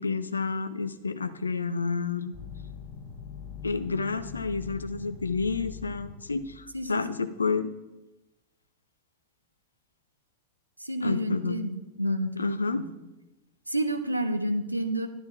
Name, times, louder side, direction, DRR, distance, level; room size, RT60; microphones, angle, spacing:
voice 1, 0.0-2.3 3.6-7.7 11.0-11.6 12.4-12.8, left 4 dB, 75° left, 13 dB, 0.5 m, -30 dB
sound 1, 2.3-6.9, left 6 dB, 30° left, 1.3 m, -43 dB
voice 2, 6.7-7.2 10.8-12.6 13.7-15.1, right 1 dB, 85° right, 7 dB, 0.7 m, -29 dB
12.0 x 11.0 x 2.5 m, 1.0 s
figure-of-eight pair, 90°, 0 cm